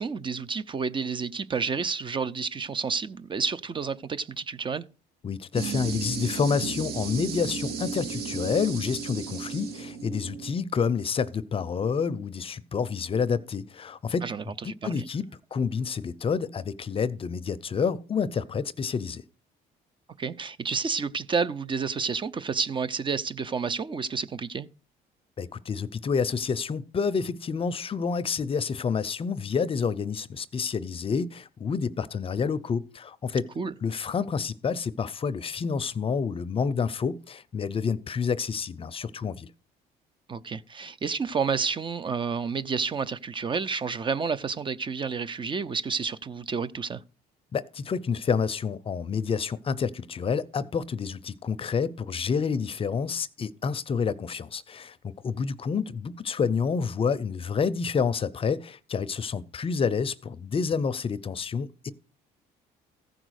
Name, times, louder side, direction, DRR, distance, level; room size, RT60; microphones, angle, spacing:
voice 1, 0.0-4.9 14.2-14.5 14.8-15.0 20.2-24.7 33.6-33.7 40.3-47.0, right 5 dB, 30° right, 0.5 m, -30 dB
voice 2, 5.2-14.3 14.6-19.2 25.4-33.5 33.8-39.5 47.5-61.9, left 6 dB, 35° left, 0.6 m, -28 dB
sound 1, 5.5-10.6, right 5 dB, 70° right, 1.8 m, -34 dB
15.0 x 5.0 x 6.4 m
cardioid pair, 110°, 17 cm